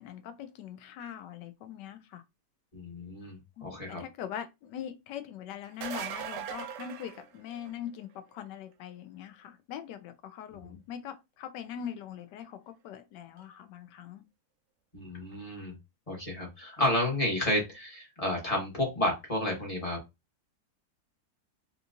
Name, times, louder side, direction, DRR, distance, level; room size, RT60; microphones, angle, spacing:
voice 1, 0.0-2.2 3.6-14.2, left 9 dB, 90° left, 1.2 m, -42 dB
voice 2, 2.7-4.0 10.6-10.7 14.9-15.8 16.1-20.0, left 1 dB, 25° left, 1.1 m, -31 dB
sound 1, 5.6-7.9 13.4-13.5 15.3-15.4, right 9 dB, 75° right, 1.1 m, -39 dB
3.6 x 2.9 x 2.5 m
omnidirectional pair, 1.8 m